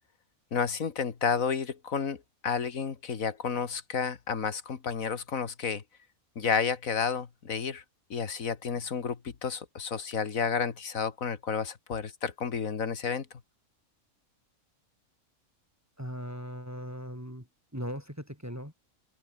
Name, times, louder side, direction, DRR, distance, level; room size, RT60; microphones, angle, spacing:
voice 1, 0.5-5.8 6.4-7.8 8.1-13.3, left 6 dB, 70° left, 2.1 m, -31 dB
voice 2, 16.0-17.5 17.7-18.7, equal, 10° right, 5.3 m, -38 dB
open air
omnidirectional pair, 1.5 m